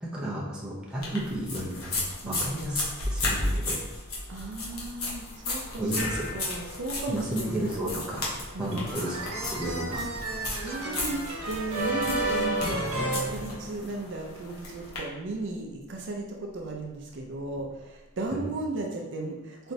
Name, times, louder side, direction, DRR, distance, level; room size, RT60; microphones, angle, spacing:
voice 1, 0.0-3.8 5.8-6.3 7.1-8.3 8.6-9.2 9.5-10.0 18.3-18.5, right 1 dB, 5° right, -6 dB, 0.6 m, -33 dB
sound 1, 1.0-15.0, left 2 dB, 75° left, 1.0 m, -34 dB
voice 2, 4.3-7.7 8.5-8.9 10.0-10.1 10.4-12.8 13.1-19.7, right 2 dB, 55° right, 1 dB, 0.5 m, -35 dB
sound 2, 5.2-18.5, left 2 dB, 40° left, 0.8 m, -47 dB
sound 3, 8.7-14.1, right 2 dB, 80° right, 1.1 m, -32 dB
3.9 x 3.3 x 2.7 m, 1.0 s
head